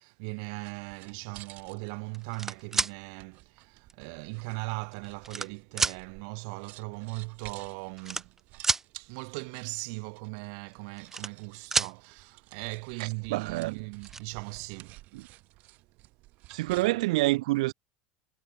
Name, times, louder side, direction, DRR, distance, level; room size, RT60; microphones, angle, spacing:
voice 1, 0.0-8.3 8.9-15.0, right 40 dB or more, 60° right, 2.2 m, -39 dB
sound 1, 0.6-17.1, right 19 dB, 45° right, 7.9 m, -54 dB
sound 2, 2.1-2.9 3.9-4.0 4.8-5.5 5.8-6.0 7.1-7.2 7.4-7.6 8.0-8.8 10.7-11.5 11.7-11.9 13.4-13.5 13.8-14.2, right 4 dB, 10° right, 0.7 m, -29 dB
voice 2, 13.0-13.8 15.1-15.2 16.5-17.7, right 20 dB, 80° right, 0.5 m, -27 dB
supercardioid pair, 160°, 4 cm